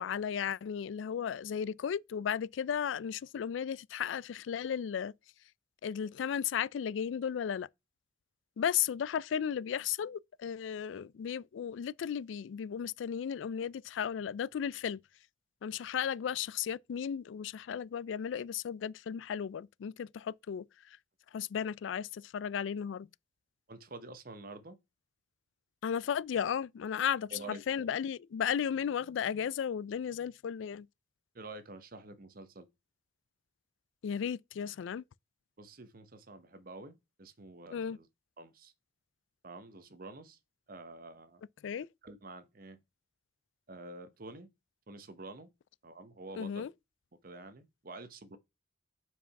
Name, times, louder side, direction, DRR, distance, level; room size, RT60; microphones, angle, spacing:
voice 1, 0.0-5.1 5.8-7.7 8.6-15.0 15.6-20.6 21.3-23.1 25.8-30.9 34.0-35.0 37.7-38.0 41.6-41.9 46.3-46.7, left 8 dB, 90° left, 0.3 m, -35 dB
voice 2, 23.7-24.8 27.3-27.6 31.3-32.7 35.6-38.1 38.4-38.7 39.4-40.4 40.7-41.4 42.0-42.8 43.7-44.5 44.9-45.5 45.8-46.7 47.2-48.4, right 2 dB, 50° right, 0.9 m, -48 dB
5.8 x 4.8 x 5.8 m
head